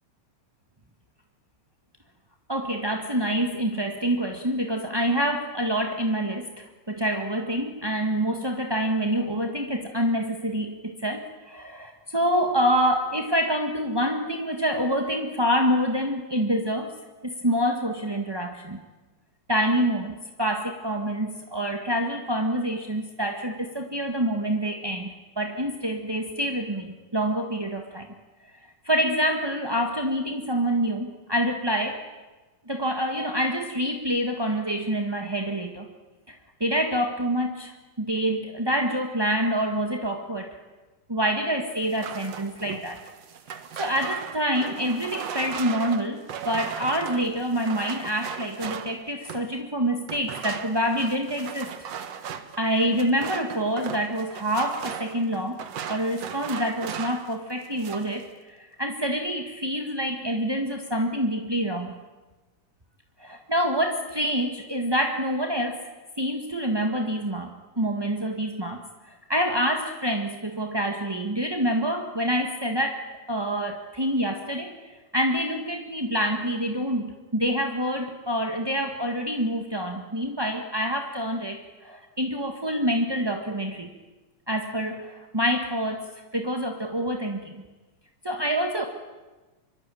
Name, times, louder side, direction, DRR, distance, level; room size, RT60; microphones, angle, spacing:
voice 1, 2.5-17.0 17.2-18.8 19.5-28.1 28.6-32.0 32.7-35.9 36.3-37.7 38.0-40.6 41.1-43.0 43.5-51.7 52.6-55.6 55.9-62.0 63.2-65.8 66.2-73.0 73.3-83.9 84.5-87.6 88.2-88.9, equal, 15° right, 3 dB, 1.0 m, -27 dB
sound 1, 41.8-49.5 50.1-57.3 57.6-58.2, right 8 dB, 60° right, 2.4 m, -37 dB
25.5 x 24.0 x 9.2 m, 1.2 s
omnidirectional pair, 3.3 m